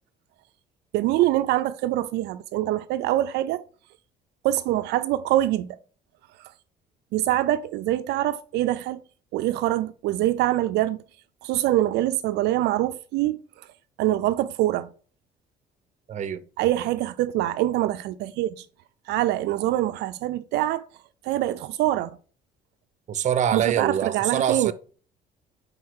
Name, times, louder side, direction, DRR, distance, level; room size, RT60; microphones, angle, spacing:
voice 1, 0.9-3.6 4.4-5.7 6.4-6.5 7.1-9.0 9.3-11.0 11.4-13.4 14.0-14.9 16.6-18.6 19.1-20.8 21.2-22.1 23.5-24.7, right 14 dB, 80° right, 0.4 m, -24 dB
voice 2, 16.1-16.4 23.1-24.7, right 9 dB, 45° right, 0.7 m, -25 dB
5.1 x 4.7 x 6.2 m
cardioid pair, 110°, 17 cm